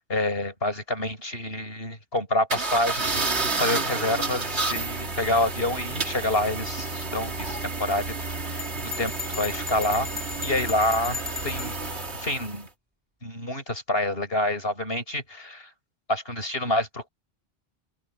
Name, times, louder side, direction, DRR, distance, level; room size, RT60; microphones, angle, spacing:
voice 1, 0.1-8.7 9.0-10.1 10.4-12.7 13.2-15.7 16.1-17.1, left 1 dB, 60° left, 8.3 m, -28 dB
sound 1, 2.5-12.6, right 3 dB, 75° right, 2.6 m, -30 dB
Bell, 8.6-11.8, left 5 dB, 10° right, 5.5 m, -37 dB
open air
omnidirectional pair, 1.1 m